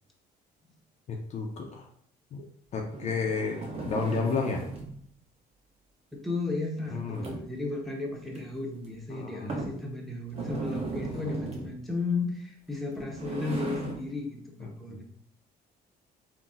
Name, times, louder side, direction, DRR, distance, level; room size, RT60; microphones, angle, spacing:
voice 1, 1.1-1.9 2.3-2.5 2.7-4.7 6.9-7.3 9.1-9.5 14.6-15.0, left 4 dB, 45° left, 1 dB, 0.4 m, -32 dB
sound 1, 2.8-5.0 6.8-7.6 8.3-8.4 8.8-8.9 9.5-9.8 10.3-11.8 12.8-14.1, right 3 dB, 35° right, 0.8 m, -37 dB
voice 2, 6.1-15.0, left 3 dB, ahead, -1 dB, 0.6 m, -34 dB
3.9 x 2.0 x 2.4 m, 0.62 s
cardioid pair, 110°, 17 cm